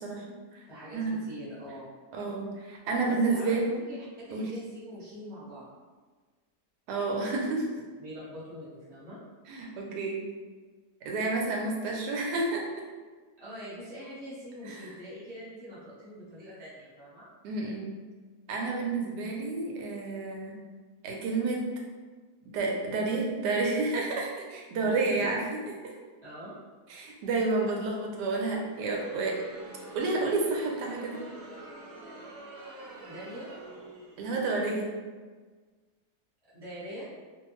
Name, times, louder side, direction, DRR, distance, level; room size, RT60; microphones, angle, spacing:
voice 1, 0.7-1.9 3.1-3.5 3.9-5.7 8.0-9.2 13.4-17.3 24.8-25.4 26.2-26.5 33.0-33.5 36.5-37.1, equal, 15° right, -10 dB, 1.1 m, -43 dB
voice 2, 2.1-3.7 4.3-4.5 6.9-7.7 9.5-10.2 11.0-12.6 14.7-14.9 17.4-17.9 18.5-20.5 21.0-21.6 22.5-25.6 25.8-25.9 26.9-29.3 29.9-31.2 34.2-34.9, right 3 dB, 85° right, -1 dB, 1.2 m, -30 dB
Crowd, 28.6-34.3, right 2 dB, 65° right, 0.9 m, -46 dB
2.7 x 2.4 x 3.0 m, 1.4 s
omnidirectional pair, 1.8 m